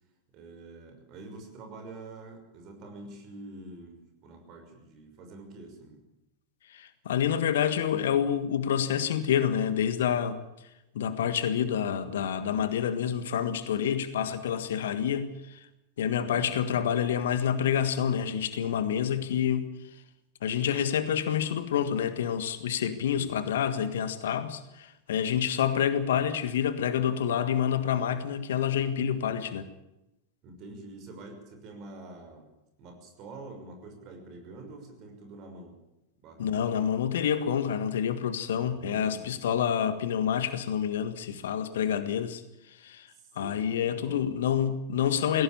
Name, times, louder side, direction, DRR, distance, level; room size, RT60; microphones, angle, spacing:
voice 1, 0.3-6.0 16.2-16.5 23.1-23.3 30.4-32.5 32.8-35.8 36.2-36.7 38.6-39.3 43.1-44.2, right 2 dB, 40° right, 6.0 m, -46 dB
voice 2, 6.7-10.4 10.9-15.7 16.0-19.7 20.4-29.7 36.4-42.4 42.7-43.1 43.3-45.4, left 8 dB, 60° left, 1.6 m, -28 dB
19.0 x 17.0 x 8.8 m
figure-of-eight pair, 90°, 0 cm